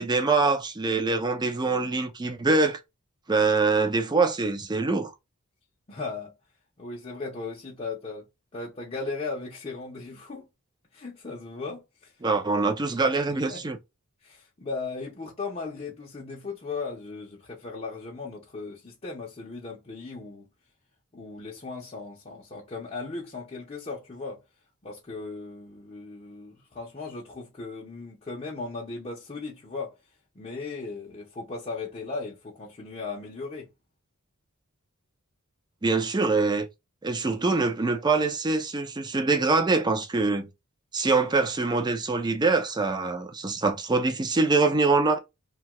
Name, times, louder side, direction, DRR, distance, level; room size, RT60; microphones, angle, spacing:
voice 1, 0.0-2.8 3.3-5.1 12.2-13.8 35.8-36.7 37.0-40.5 40.9-45.2, right 3 dB, 20° right, 0.4 m, -24 dB
voice 2, 5.9-6.3 6.8-8.3 8.5-10.5 10.9-12.4 13.3-13.6 14.2-20.5 21.1-24.4 24.8-29.9 30.4-33.7, left 3 dB, 30° left, 0.6 m, -37 dB
2.8 x 2.2 x 2.9 m
head